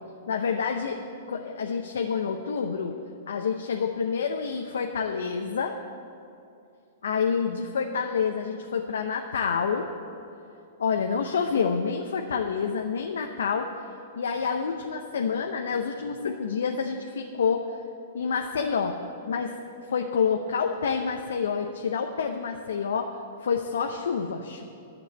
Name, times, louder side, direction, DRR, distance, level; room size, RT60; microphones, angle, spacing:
voice 1, 0.3-1.0 1.3-3.0 3.3-5.8 7.0-9.9 10.8-13.7 14.2-17.6 18.1-19.0 19.3-19.5 19.9-23.1 23.4-24.6, left 6 dB, 75° left, 3 dB, 0.8 m, -28 dB
11.5 x 7.2 x 8.1 m, 2.6 s
hypercardioid pair, 115°, 0 cm